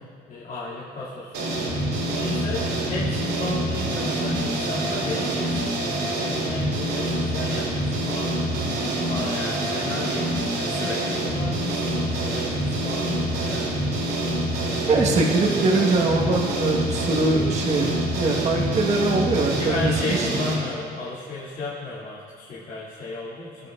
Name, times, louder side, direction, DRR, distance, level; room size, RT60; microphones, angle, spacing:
voice 1, 0.3-1.3 2.1-5.7 6.2-8.5 9.1-13.7 14.6-15.3 16.0-16.8 19.5-23.7, left 2 dB, 55° left, -10 dB, 2.4 m, -34 dB
sound 1, 1.3-20.5, right 1 dB, 85° right, 2.6 m, -26 dB
voice 2, 14.9-17.9 18.1-19.9 20.2-20.3, right 3 dB, 40° right, -1 dB, 1.3 m, -22 dB
16.5 x 7.9 x 2.4 m, 2.1 s
cardioid pair, 110°, 17 cm